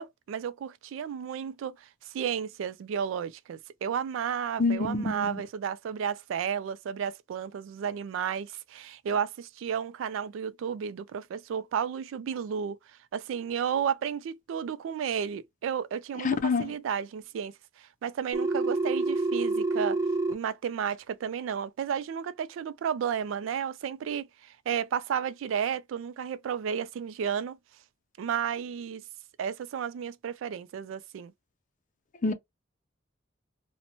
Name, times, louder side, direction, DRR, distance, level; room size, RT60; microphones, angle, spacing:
voice 1, 0.0-12.8 13.1-20.0 20.3-27.6 28.2-29.0 29.4-31.3, right 7 dB, 85° right, 0.3 m, -32 dB
voice 2, 4.6-5.4 16.2-16.7 32.2-32.3, left 4 dB, 40° left, 0.4 m, -27 dB
Telephone, 18.3-20.3, right 3 dB, 15° right, 0.5 m, -27 dB
2.9 x 2.1 x 2.6 m
head